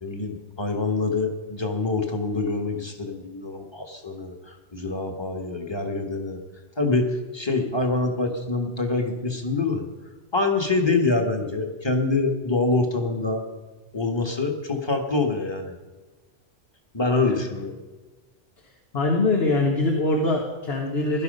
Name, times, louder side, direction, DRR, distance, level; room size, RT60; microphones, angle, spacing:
voice 1, 0.0-4.4 4.7-6.4 6.8-9.9 10.3-13.4 13.9-15.8 16.9-17.7, left 3 dB, 25° left, 4 dB, 1.7 m, -25 dB
voice 2, 18.6-21.2, left 2 dB, 70° left, 1 dB, 1.8 m, -23 dB
17.0 x 12.0 x 5.5 m, 1.2 s
omnidirectional pair, 1.1 m